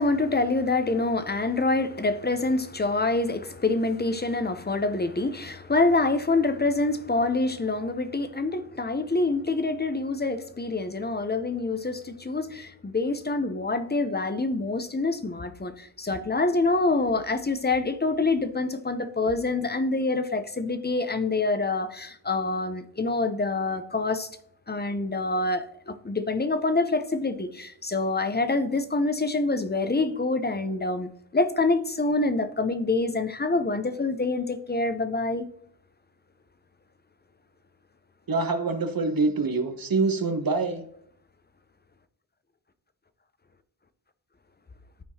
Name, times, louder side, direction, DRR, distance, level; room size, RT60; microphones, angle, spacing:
voice 1, 0.0-24.3 24.7-35.5, left 3 dB, 20° left, 0.7 m, -26 dB
voice 2, 38.3-40.8, right 3 dB, 50° right, 1.2 m, -25 dB
12.5 x 4.5 x 2.8 m
cardioid pair, 50°, 45 cm